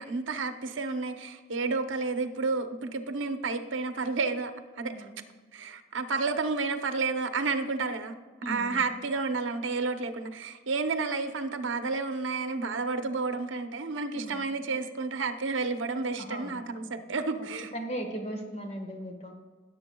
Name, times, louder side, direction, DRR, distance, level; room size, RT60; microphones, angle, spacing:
voice 1, 0.0-4.5 4.8-5.1 5.5-8.1 8.5-17.7, right 4 dB, 80° right, 7 dB, 0.8 m, -31 dB
voice 2, 4.9-5.2 8.4-8.8 14.1-14.4 16.2-16.6 17.4-17.5 17.7-19.3, right 1 dB, 35° left, 3 dB, 1.4 m, -37 dB
16.5 x 7.6 x 2.3 m, 1.5 s
head